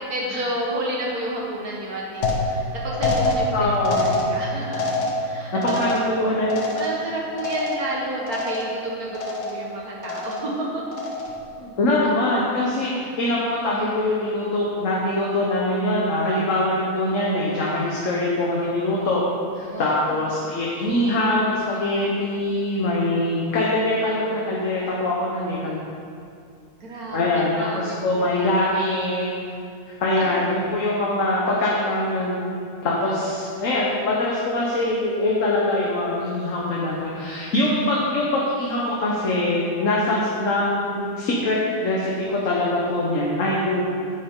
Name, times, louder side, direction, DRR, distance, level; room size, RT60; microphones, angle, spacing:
voice 1, 0.1-3.8 4.3-4.8 5.2-5.8 6.1-6.3 6.7-11.0 19.7-20.1 20.4-20.6 26.8-27.2 27.6-28.3 30.2-30.3, right 1 dB, 65° right, -3 dB, 2.0 m, -30 dB
sound 1, 2.2-8.0 8.3-8.8 9.1-9.7 10.0-10.6 10.9-11.5, left 2 dB, 85° left, 1.6 m, -26 dB
voice 2, 3.5-4.2 5.8-6.6 11.6-19.2 19.6-25.8 27.1-29.5 29.9-32.4 32.8-43.8, left 1 dB, 55° left, -5 dB, 1.4 m, -23 dB
9.5 x 7.9 x 3.8 m, 2.4 s
omnidirectional pair, 1.7 m